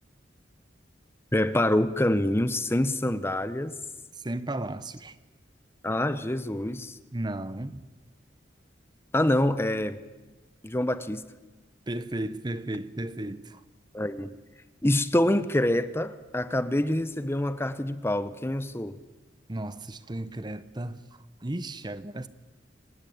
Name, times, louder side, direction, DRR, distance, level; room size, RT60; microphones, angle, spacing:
voice 1, 1.3-3.8 5.8-7.0 9.1-10.0 10.6-11.2 13.9-14.3 14.8-19.0, left 1 dB, 15° left, 0.8 m, -26 dB
voice 2, 4.1-5.1 7.1-7.8 11.9-13.6 19.5-22.3, right 1 dB, 25° right, 0.8 m, -34 dB
25.0 x 20.0 x 8.7 m
head